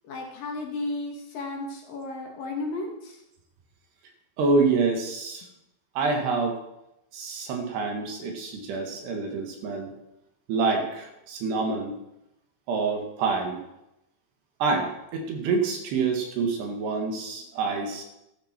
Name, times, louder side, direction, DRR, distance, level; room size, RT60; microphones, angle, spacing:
voice 1, 0.1-3.1, left 2 dB, 60° left, 0 dB, 3.0 m, -33 dB
voice 2, 4.4-5.4 6.0-6.6 7.1-9.9 10.5-12.0 12.7-13.6 14.6-18.0, right 4 dB, 70° right, 2 dB, 3.7 m, -27 dB
13.5 x 12.5 x 4.4 m, 0.87 s
omnidirectional pair, 5.2 m